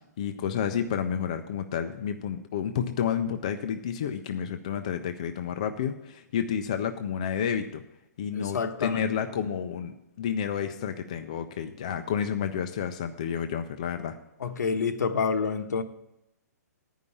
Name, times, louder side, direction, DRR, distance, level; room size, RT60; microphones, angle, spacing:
voice 1, 0.2-7.8 8.2-14.2, left 8 dB, 25° left, 7 dB, 0.3 m, -30 dB
voice 2, 8.3-9.1 14.4-15.8, left 5 dB, 75° left, 7 dB, 1.1 m, -28 dB
9.6 x 5.4 x 8.3 m, 0.86 s
hypercardioid pair, 180°, 9 cm